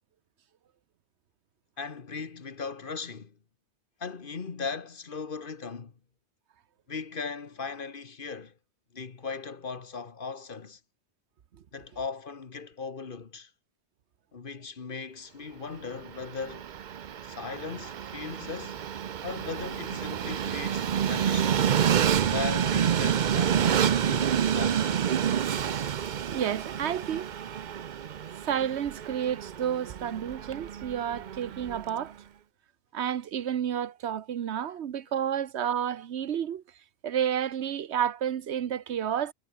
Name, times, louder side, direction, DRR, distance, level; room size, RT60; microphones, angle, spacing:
voice 1, 1.8-3.3 4.0-5.9 6.9-8.5 8.9-10.8 11.7-13.5 14.3-16.7 17.2-18.8 19.2-21.7 22.3-25.1, left 5 dB, 55° left, 1.5 m, -38 dB
Train, 16.0-32.0, right 8 dB, 50° right, 0.7 m, -28 dB
voice 2, 26.3-27.3 28.4-32.1 32.9-36.6 37.0-39.3, right 9 dB, 85° right, 1.1 m, -30 dB
omnidirectional pair, 1.1 m